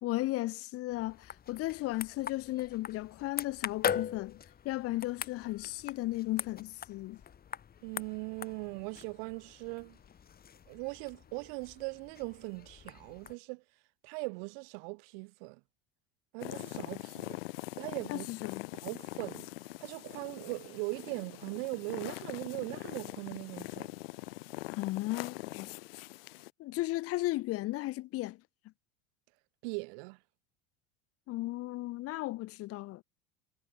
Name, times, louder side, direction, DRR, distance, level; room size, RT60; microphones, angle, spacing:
voice 1, 0.0-4.4 4.6-7.2 18.1-18.7 24.7-25.7 26.6-28.4 31.3-33.0, left 18 dB, 50° left, 1.4 m, -35 dB
sound 1, 0.9-13.3, left 8 dB, 30° left, 2.3 m, -42 dB
voice 2, 7.8-10.0 10.7-13.6 14.0-15.6 16.3-17.4 17.8-18.3 18.8-19.5 19.8-23.9 29.6-30.2, right 38 dB, 65° right, 3.0 m, -40 dB
sound 2, 16.4-26.5, left 21 dB, 70° left, 2.2 m, -43 dB
hypercardioid pair, 85°, 30 cm